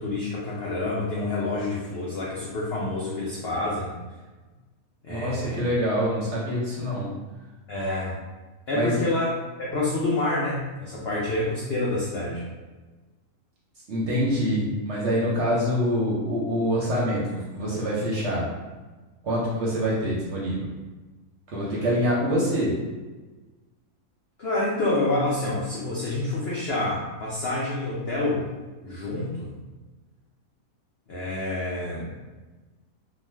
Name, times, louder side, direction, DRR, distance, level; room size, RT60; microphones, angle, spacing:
voice 1, 0.0-3.9 5.0-5.6 7.7-8.1 8.7-9.2 9.6-12.4 24.4-28.5 28.8-29.6 31.1-32.1, left 2 dB, 75° left, -6 dB, 0.5 m, -28 dB
voice 2, 5.1-7.1 8.7-9.0 13.9-18.5 19.2-20.7 21.5-22.7, equal, 60° right, -5 dB, 0.8 m, -25 dB
2.5 x 2.2 x 3.2 m, 1.2 s
omnidirectional pair, 1.7 m